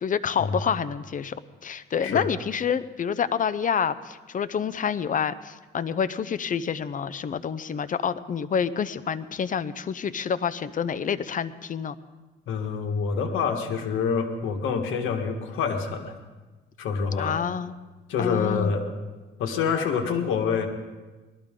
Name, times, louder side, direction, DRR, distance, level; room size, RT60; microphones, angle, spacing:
voice 1, 0.0-11.9 17.2-17.7 18.2-18.7, left 7 dB, 40° left, 14 dB, 0.6 m, -28 dB
voice 2, 12.5-16.1 16.8-17.4 18.1-18.8 19.4-20.7, left 6 dB, 85° left, 4 dB, 1.6 m, -26 dB
19.5 x 13.5 x 3.7 m, 1.2 s
cardioid pair, 90°, 20 cm